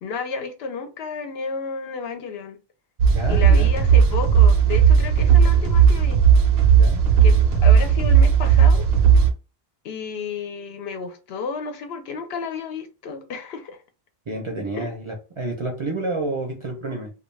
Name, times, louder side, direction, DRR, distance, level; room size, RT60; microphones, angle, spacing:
voice 1, 0.0-2.6 3.3-6.2 7.2-8.9 9.8-13.8 14.7-14.9, left 5 dB, 75° left, 0.8 m, -32 dB
sound 1, 3.0-9.3, right 7 dB, 75° right, 0.8 m, -15 dB
voice 2, 3.1-3.7 6.7-7.0 14.3-17.1, right 2 dB, 40° right, 0.5 m, -29 dB
2.3 x 2.3 x 3.1 m
omnidirectional pair, 1.0 m